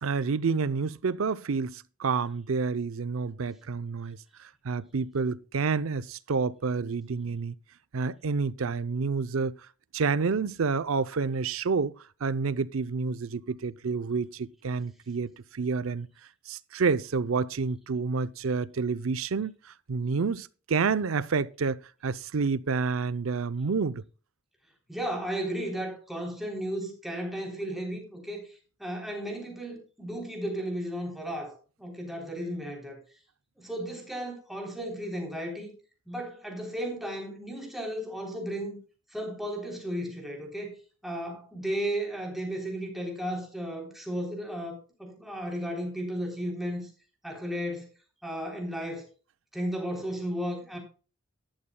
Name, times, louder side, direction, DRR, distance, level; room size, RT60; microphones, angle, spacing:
voice 1, 0.0-7.5 7.9-9.6 9.9-11.9 12.2-16.1 16.5-24.0, right 4 dB, 85° right, 0.6 m, -29 dB
voice 2, 24.9-28.5 28.8-33.0 33.6-35.7 36.1-38.8 39.1-40.8 41.0-46.9 47.2-47.9 48.2-49.0 49.5-50.8, equal, ahead, 3.4 m, -34 dB
14.0 x 11.5 x 2.2 m
head